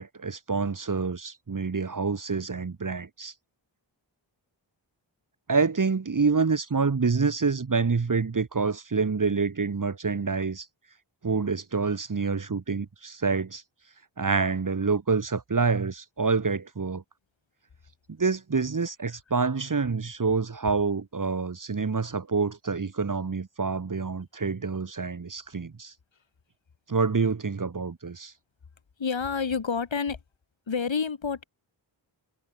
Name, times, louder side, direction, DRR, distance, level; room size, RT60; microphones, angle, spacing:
voice 1, 0.0-3.3 5.5-10.7 11.2-13.6 14.2-17.0 18.2-25.9 26.9-28.3, right 4 dB, 45° right, 1.6 m, -27 dB
voice 2, 29.0-30.2 30.7-31.4, left 5 dB, 80° left, 4.4 m, -28 dB
wide cardioid pair, 80°, 45 cm